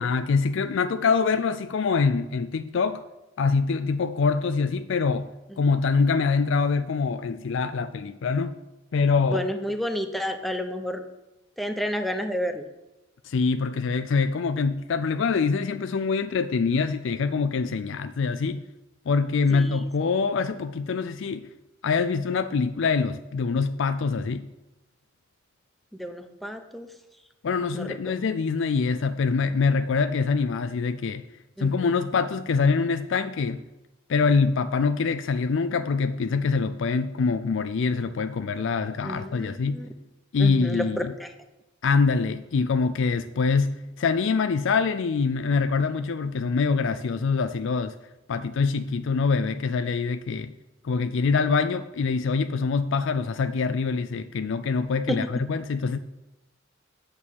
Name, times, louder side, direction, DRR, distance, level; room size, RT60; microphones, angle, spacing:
voice 1, 0.0-3.0 3.4-5.3 5.6-8.6 8.9-9.5 13.2-18.6 19.1-21.5 21.8-24.5 27.4-31.2 31.6-33.6 34.1-39.9 40.3-41.0 41.8-48.0 48.3-50.5 50.8-56.0, left 4 dB, 65° left, 11 dB, 0.4 m, -24 dB
voice 2, 9.3-11.0 11.6-12.7 19.5-19.9 25.9-26.9 27.7-28.1 31.6-31.9 39.0-39.9 40.4-41.3 55.1-55.3, equal, ahead, 6 dB, 0.7 m, -31 dB
8.6 x 6.5 x 7.1 m, 0.99 s
head